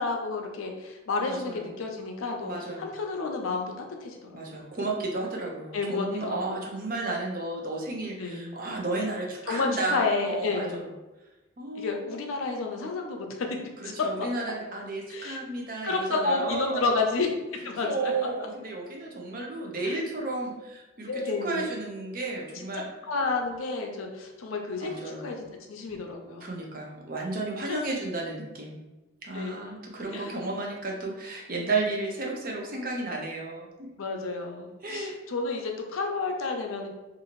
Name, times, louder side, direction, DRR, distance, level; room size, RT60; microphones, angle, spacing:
voice 1, 0.0-2.5 2.8-3.7 4.0-4.7 5.7-6.6 8.2-8.5 9.4-10.8 11.7-13.5 15.1-15.4 15.8-17.3 17.6-18.1 19.9-20.0 21.1-21.7 22.5-22.7 23.1-26.5 27.7-27.8 29.3-29.6 30.1-30.3 34.0-36.9, left 3 dB, 85° left, 2 dB, 0.5 m, -30 dB
voice 2, 1.2-1.7 2.4-2.9 4.3-10.9 11.6-12.1 13.8-16.9 17.8-22.9 24.8-25.3 26.4-28.8 29.2-33.9 34.8-35.1, right 2 dB, 45° right, -1 dB, 0.6 m, -33 dB
2.7 x 2.5 x 2.9 m, 1.1 s
head